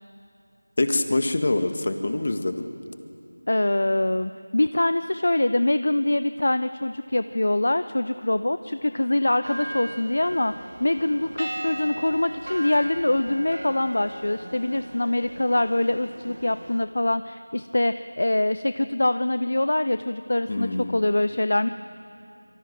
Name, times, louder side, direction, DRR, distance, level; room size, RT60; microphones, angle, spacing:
voice 1, 0.8-2.7 20.5-21.1, left 2 dB, 35° left, 7 dB, 1.7 m, -25 dB
voice 2, 3.5-10.5 10.8-21.7, left 1 dB, 50° left, 12 dB, 0.7 m, -24 dB
sound 1, 9.4-16.8, right 1 dB, 65° right, 2.0 m, -37 dB
26.5 x 24.0 x 7.8 m, 2.8 s
figure-of-eight pair, 170°, 0 cm